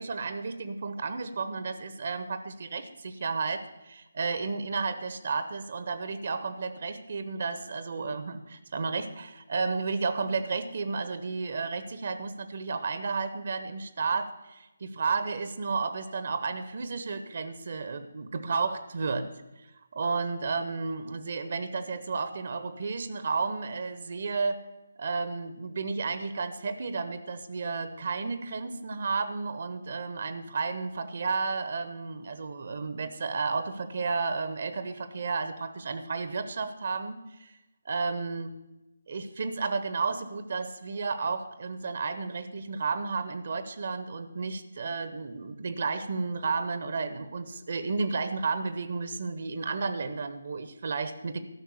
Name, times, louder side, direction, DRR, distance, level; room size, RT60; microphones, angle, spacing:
voice 1, 0.0-19.3 19.9-24.6 25.0-37.5 37.8-38.5 39.1-51.4, right 4 dB, 50° right, 11 dB, 0.9 m, -32 dB
12.5 x 6.0 x 8.6 m, 0.98 s
figure-of-eight pair, 150°, 0 cm